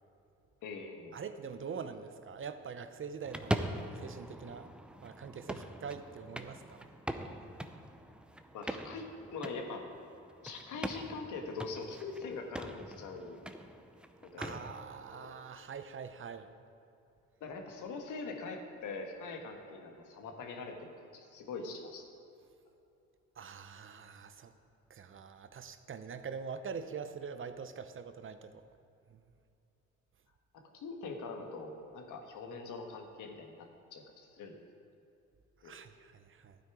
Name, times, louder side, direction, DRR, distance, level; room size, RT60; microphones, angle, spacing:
voice 1, 0.6-1.2 8.5-9.9 10.4-13.4 14.2-14.6 15.1-15.3 17.4-22.0 30.5-33.7 33.9-34.5 35.6-35.7, left 4 dB, 80° left, 3 dB, 1.6 m, -43 dB
voice 2, 1.1-4.7 5.0-6.9 14.4-16.5 23.4-24.5 24.9-28.6 29.1-29.2 35.6-36.6, right 6 dB, 45° right, 10 dB, 0.8 m, -44 dB
sound 1, 3.2-14.8, right 1 dB, 5° right, 0.6 m, -42 dB
12.0 x 9.3 x 4.8 m, 2.8 s
cardioid pair, 90°, 30 cm